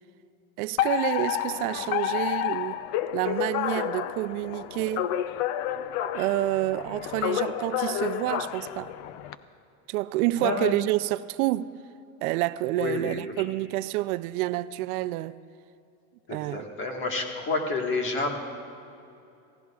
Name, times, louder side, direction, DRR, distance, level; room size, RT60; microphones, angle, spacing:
voice 1, 0.6-2.8 3.1-5.1 6.1-8.9 9.9-11.7 12.2-15.4 16.3-16.6, right 17 dB, 85° right, 0.6 m, -28 dB
Alarm, 0.8-9.3, left 11 dB, 45° left, 0.5 m, -30 dB
voice 2, 10.4-10.8 12.8-13.4 16.3-18.4, left 3 dB, 25° left, 1.6 m, -29 dB
28.0 x 16.0 x 2.4 m
supercardioid pair, 165°, 43 cm